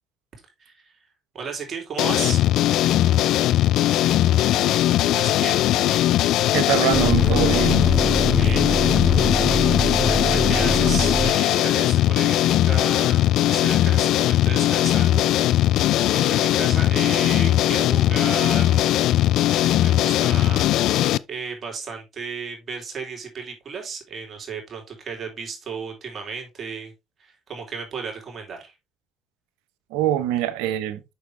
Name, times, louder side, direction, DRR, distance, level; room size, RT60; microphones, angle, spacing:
voice 1, 0.6-0.9 1.3-2.4 5.1-5.6 8.3-8.7 10.1-15.3 16.1-26.9 27.2-28.7, right 5 dB, 45° right, 3.6 m, -34 dB
sound 1, 2.0-21.2, left 13 dB, 70° left, 0.3 m, -19 dB
voice 2, 6.5-7.9 29.9-31.0, right 12 dB, 80° right, 1.0 m, -23 dB
sound 2, 6.9-11.3, right 1 dB, 5° right, 0.8 m, -24 dB
6.6 x 6.3 x 3.4 m
hypercardioid pair, 65°, 0 cm